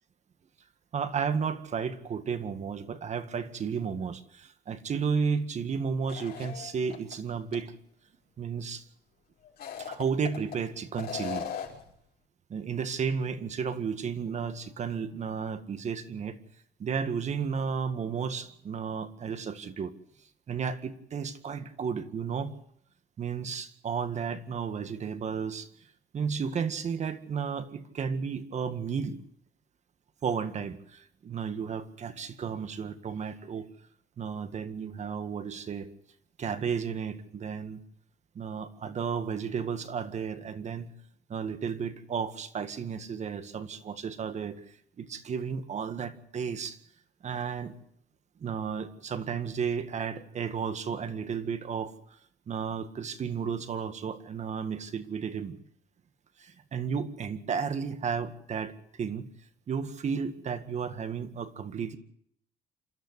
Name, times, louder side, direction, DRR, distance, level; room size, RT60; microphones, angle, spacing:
voice 1, 0.9-7.7 8.4-8.8 9.8-11.5 12.5-16.4 16.8-19.9 20.5-22.5 23.2-25.7 26.1-29.2 30.2-33.7 34.2-35.9 36.4-37.8 38.4-40.9 41.3-44.6 45.0-46.8 47.2-47.7 48.4-51.9 52.5-55.6 56.4-58.7 59.0-59.3 59.7-62.0, right 6 dB, 45° right, 10 dB, 1.9 m, -33 dB
sound 1, 6.1-7.1 7.5-7.6 9.4-10.6 11.0-11.9, left 8 dB, 65° left, 5.5 m, -38 dB
28.0 x 13.0 x 8.2 m, 0.70 s
cardioid pair, 110°, 17 cm